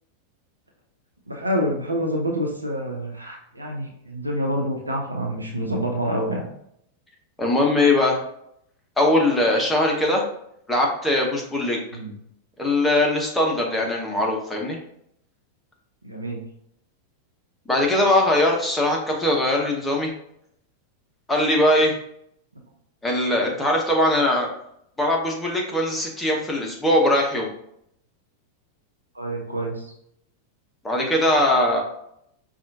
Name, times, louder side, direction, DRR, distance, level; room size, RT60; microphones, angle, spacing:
voice 1, 1.3-6.5 11.9-12.2 16.0-16.4 29.1-29.9, equal, 80° right, 1 dB, 0.8 m, -27 dB
voice 2, 7.4-8.2 9.0-10.2 10.7-11.8 12.6-14.8 17.7-20.1 21.3-21.9 23.0-24.5 25.0-27.5 30.8-31.8, left 1 dB, 5° left, -1 dB, 0.9 m, -21 dB
5.3 x 2.5 x 2.7 m, 0.73 s
figure-of-eight pair, 90°, 0 cm